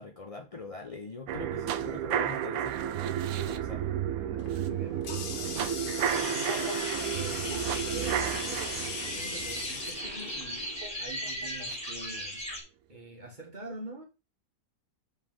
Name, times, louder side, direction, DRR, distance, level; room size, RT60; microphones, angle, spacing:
voice 1, 0.0-3.1 3.4-4.0, left 3 dB, 35° left, 0.6 m, -43 dB
sound 1, 1.3-11.3 11.7-11.8, right 9 dB, 80° right, 1.1 m, -32 dB
voice 2, 4.1-12.4 12.9-14.0, right 2 dB, 30° right, 1.9 m, -45 dB
Water tap faucet, 4.4-10.9, left 5 dB, 80° left, 1.6 m, -39 dB
sound 2, 6.0-12.6, equal, 5° left, 2.3 m, -38 dB
7.3 x 4.1 x 3.8 m
omnidirectional pair, 1.5 m